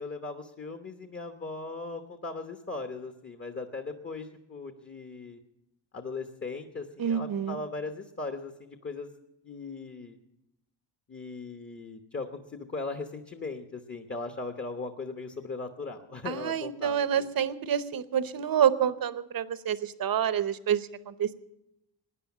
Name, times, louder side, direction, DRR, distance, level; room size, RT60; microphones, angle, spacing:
voice 1, 0.0-5.4 5.9-9.1 9.4-10.2 11.1-17.3, left 3 dB, 25° left, 7 dB, 1.0 m, -38 dB
voice 2, 7.0-7.6 16.3-21.3, right 9 dB, 50° right, 14 dB, 0.9 m, -28 dB
17.0 x 10.0 x 7.3 m, 0.88 s
cardioid pair, 115°, 45 cm